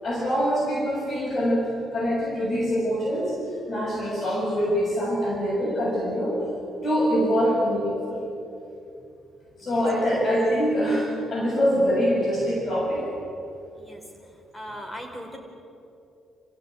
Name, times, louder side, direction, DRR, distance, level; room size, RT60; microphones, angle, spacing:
voice 1, 0.0-3.4 3.7-6.3 6.8-8.2 9.6-13.1, equal, 40° left, -4 dB, 7.3 m, -24 dB
voice 2, 14.5-15.4, equal, 10° left, 3 dB, 5.0 m, -38 dB
26.5 x 15.5 x 9.4 m, 2.8 s
cardioid pair, 90°, 0 cm